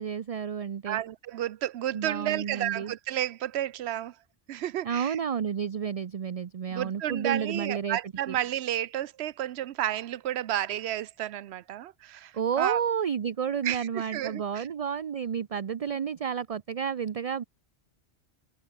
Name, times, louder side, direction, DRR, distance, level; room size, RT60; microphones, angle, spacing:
voice 1, 0.0-1.0 1.9-2.9 4.8-8.0 8.3-8.4 12.3-17.4, right 7 dB, 45° right, 0.5 m, -31 dB
voice 2, 0.9-4.1 4.5-5.2 6.7-12.8 13.6-14.7, right 12 dB, 75° right, 0.9 m, -32 dB
omnidirectional pair, 1.1 m